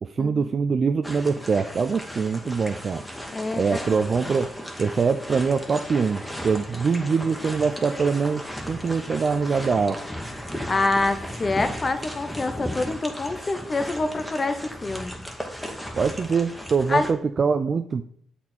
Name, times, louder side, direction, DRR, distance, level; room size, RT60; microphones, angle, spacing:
voice 1, 0.0-3.0 3.6-4.5 4.8-10.0 16.0-18.0, right 5 dB, 40° right, 8 dB, 0.3 m, -23 dB
sound 1, 1.0-17.1, equal, 5° left, 1.1 m, -36 dB
voice 2, 3.3-4.3 10.7-15.1 16.9-17.1, left 3 dB, 30° left, 9 dB, 0.7 m, -26 dB
7.2 x 4.2 x 4.4 m, 0.66 s
cardioid pair, 90°, 0 cm